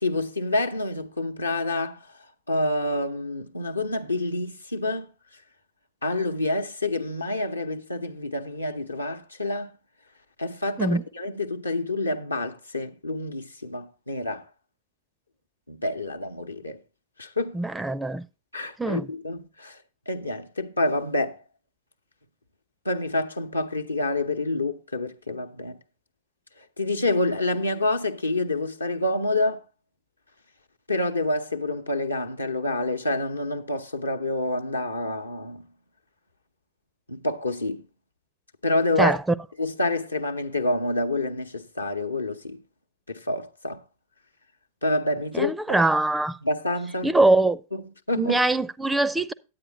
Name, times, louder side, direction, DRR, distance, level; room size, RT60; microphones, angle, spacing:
voice 1, 0.0-2.0 2.5-5.1 6.0-9.7 10.4-14.4 15.7-16.8 17.2-17.6 18.5-19.8 20.1-21.4 22.8-25.8 26.8-29.6 30.9-35.7 37.1-37.8 38.6-39.1 39.6-42.6 43.1-43.8 44.8-45.8 46.4-47.1 47.7-48.4, left 2 dB, 85° left, 0.8 m, -27 dB
voice 2, 17.5-18.2 18.8-19.1 39.0-39.2 45.3-46.4 47.0-47.6 48.2-49.3, right 2 dB, 5° right, 0.4 m, -22 dB
9.4 x 8.8 x 3.8 m
figure-of-eight pair, 90°, 0 cm